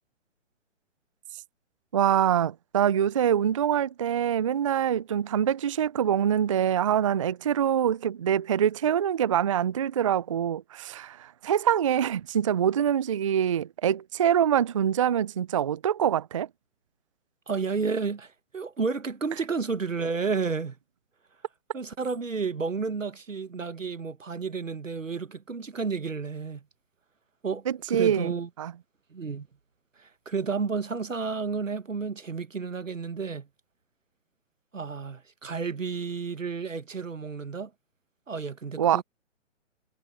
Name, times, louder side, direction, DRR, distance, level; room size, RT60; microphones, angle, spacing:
voice 1, 1.9-16.5 27.7-28.3 28.6-28.7 38.8-39.0, right 9 dB, 25° right, 0.4 m, -25 dB
voice 2, 17.5-20.8 21.7-26.6 27.4-28.5 29.1-29.5 30.0-33.5 34.7-37.7 38.3-39.0, right 5 dB, 85° right, 1.5 m, -31 dB
figure-of-eight pair, 135°, 38 cm